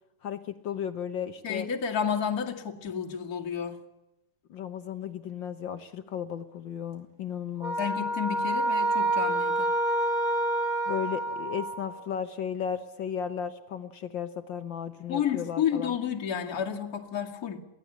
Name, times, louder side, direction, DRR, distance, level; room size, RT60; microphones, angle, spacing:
voice 1, 0.2-1.7 4.5-7.8 10.9-15.9, left 8 dB, 65° left, 10 dB, 1.1 m, -35 dB
voice 2, 1.4-3.8 7.8-9.7 15.1-17.6, left 8 dB, 30° left, 0 dB, 2.4 m, -31 dB
sound 1, 7.6-12.0, right 1 dB, 25° right, 4.0 m, -28 dB
23.0 x 17.0 x 8.6 m, 0.95 s
omnidirectional pair, 3.6 m